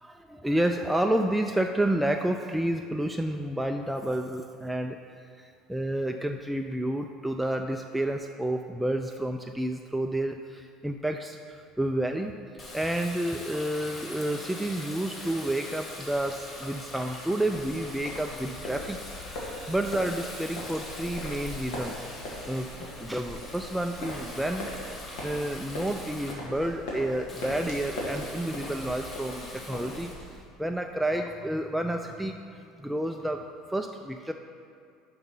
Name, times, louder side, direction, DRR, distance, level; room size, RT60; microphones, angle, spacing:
voice 1, 0.0-5.0 5.4-12.3 12.7-19.0 19.3-24.7 25.2-33.4 33.7-34.3, right 1 dB, 5° right, 4 dB, 0.3 m, -30 dB
Water tap faucet, 12.6-26.3 27.3-30.1, left 1 dB, 35° left, 1.4 m, -42 dB
sound 1, 17.5-30.4, left 1 dB, 75° left, 1.6 m, -40 dB
5.4 x 4.7 x 5.4 m, 2.4 s
hypercardioid pair, 85°, 0 cm